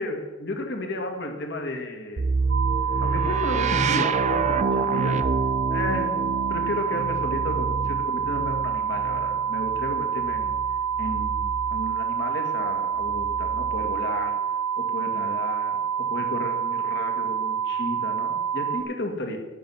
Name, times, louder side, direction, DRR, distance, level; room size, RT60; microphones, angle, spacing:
voice 1, 0.0-2.3 3.0-5.2 5.7-10.5 11.0-14.4 14.8-19.4, left 1 dB, 60° left, 3 dB, 2.2 m, -33 dB
sound 1, 2.2-12.0 13.0-14.0, right 4 dB, 35° right, 0.5 m, -29 dB
sound 2, 2.5-18.8, right 7 dB, 75° right, 1.4 m, -27 dB
12.5 x 9.6 x 6.0 m, 1.1 s
head